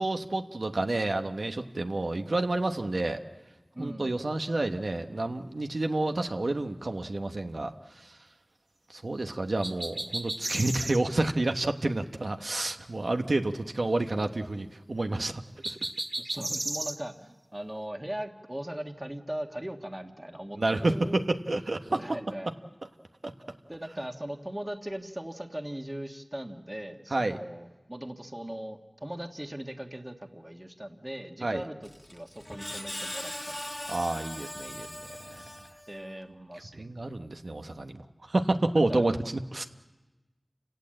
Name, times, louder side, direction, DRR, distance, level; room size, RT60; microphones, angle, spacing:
voice 1, 0.0-3.2 3.8-7.7 8.9-15.8 20.6-22.0 23.2-23.3 27.1-27.4 31.4-31.6 33.9-34.9 35.2-35.4 36.7-38.0 38.3-39.6, right 2 dB, 80° right, 5 dB, 1.1 m, -29 dB
voice 2, 3.7-4.2 16.2-21.2 21.9-22.5 23.7-33.9 35.9-36.9 38.9-39.0, right 1 dB, 20° right, 4 dB, 1.6 m, -39 dB
sound 1, 9.6-11.0 15.6-17.0, right 2 dB, 60° right, 1.7 m, -33 dB
Screech, 31.8-36.1, left 1 dB, 20° left, 1.5 m, -40 dB
29.0 x 17.5 x 7.8 m, 1.1 s
wide cardioid pair, 55°, 0 cm